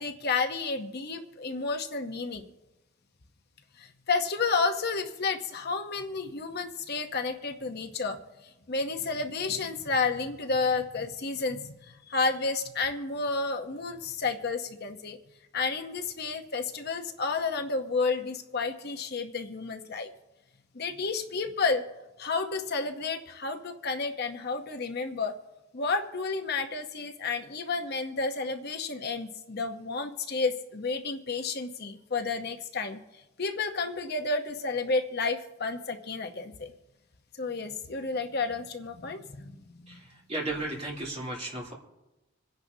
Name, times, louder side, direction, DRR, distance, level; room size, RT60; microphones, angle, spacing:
voice 1, 0.0-2.4 3.8-8.2 8.7-15.2 15.5-20.1 20.7-21.8 22.2-25.4 25.7-33.0 33.4-36.7 37.4-40.0, left 4 dB, 50° left, 7 dB, 0.8 m, -31 dB
voice 2, 39.9-41.7, right 2 dB, 30° right, -3 dB, 3.0 m, -35 dB
27.0 x 10.5 x 2.7 m, 0.99 s
head